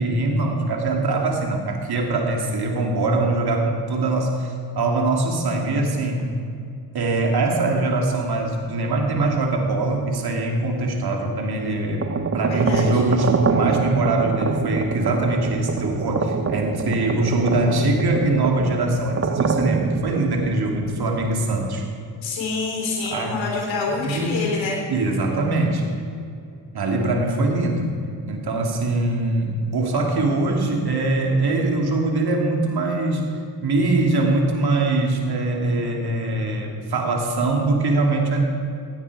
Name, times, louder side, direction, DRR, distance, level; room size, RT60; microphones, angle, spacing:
voice 1, 0.0-6.3 6.9-12.1 12.3-21.8 23.1-23.4 24.0-24.5 24.9-25.8 26.7-27.9 28.3-33.2 33.6-38.4, right 2 dB, 55° right, 1 dB, 2.9 m, -22 dB
sound 1, 11.9-21.7, right 5 dB, 30° right, 1.0 m, -25 dB
voice 2, 12.5-13.0 22.2-24.8, left 3 dB, 75° left, 0 dB, 3.7 m, -26 dB
16.5 x 9.7 x 4.9 m, 2.5 s
supercardioid pair, 55°, 46 cm